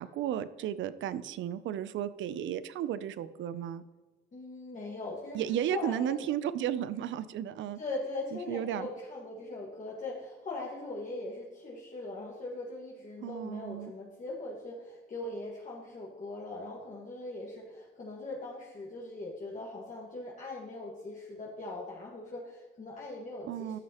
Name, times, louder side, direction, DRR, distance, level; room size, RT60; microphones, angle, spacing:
voice 1, 0.0-3.8 5.3-7.8 8.3-8.9 13.2-13.9 23.4-23.8, right 10 dB, 75° right, 15 dB, 0.5 m, -34 dB
voice 2, 4.3-5.4 5.7-6.3 7.8-23.8, left 2 dB, 40° left, -4 dB, 1.7 m, -40 dB
14.0 x 6.2 x 3.0 m, 1.2 s
cardioid pair, 90°, 20 cm